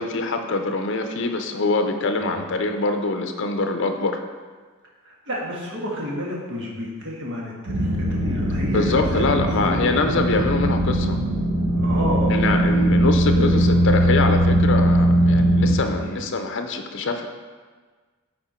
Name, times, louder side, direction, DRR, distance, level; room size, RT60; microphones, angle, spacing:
voice 1, 0.0-4.2 8.7-11.2 12.3-17.3, left 3 dB, 60° left, 5 dB, 0.5 m, -24 dB
voice 2, 5.0-10.7 11.7-12.8 13.3-13.8 14.8-15.0 16.0-16.2, equal, 60° right, -3 dB, 1.5 m, -31 dB
sound 1, 7.7-15.7, right 1 dB, 75° right, 1.4 m, -20 dB
7.6 x 4.3 x 4.4 m, 1.5 s
head